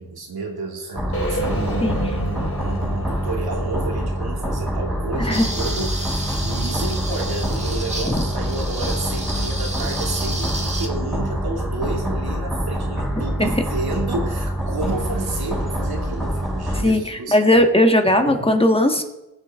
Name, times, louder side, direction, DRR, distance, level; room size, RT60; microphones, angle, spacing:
voice 1, 0.0-17.6 18.2-18.5, right 3 dB, 90° right, 0 dB, 2.5 m, -31 dB
sound 1, 0.9-16.8, equal, ahead, 4.1 m, -25 dB
sound 2, 1.1-5.2, equal, 40° left, 2.4 m, -31 dB
sound 3, 5.3-10.9, right 1 dB, 20° right, 1.7 m, -32 dB
voice 2, 16.8-19.0, left 1 dB, 15° left, 5 dB, 1.3 m, -17 dB
19.0 x 8.1 x 3.6 m, 0.96 s
wide cardioid pair, 70°, 37 cm